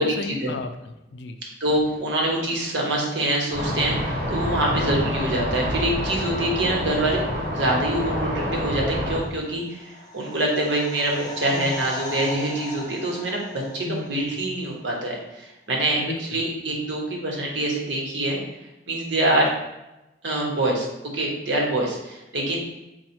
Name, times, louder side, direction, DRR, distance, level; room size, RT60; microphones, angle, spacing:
voice 1, 0.0-1.4 4.9-5.2 13.8-14.3 15.9-16.4 19.1-19.5, left 3 dB, 70° left, 8 dB, 0.4 m, -34 dB
voice 2, 1.6-7.2 7.6-18.4 18.9-19.5 20.2-20.9 21.1-22.6, right 1 dB, 85° right, -1 dB, 1.1 m, -25 dB
sound 1, 3.5-9.2, equal, 55° right, 1.3 m, -27 dB
sound 2, 9.5-14.3 14.6-14.7, left 2 dB, 20° left, 0.7 m, -38 dB
4.2 x 2.3 x 4.3 m, 0.95 s
head